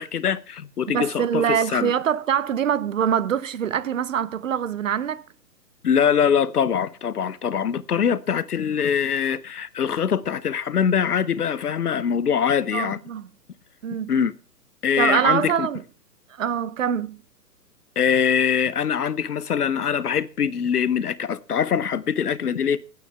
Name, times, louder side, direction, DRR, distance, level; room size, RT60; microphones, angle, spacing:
voice 1, 0.0-1.9 5.8-13.0 14.1-14.3 14.8-15.7 18.0-22.8, left 7 dB, 65° left, 0.8 m, -23 dB
voice 2, 0.9-5.2 12.7-13.3 13.8-14.2 15.0-15.8 16.3-17.2, right 8 dB, 50° right, 0.9 m, -24 dB
19.5 x 9.1 x 3.3 m
figure-of-eight pair, 120°, 50 cm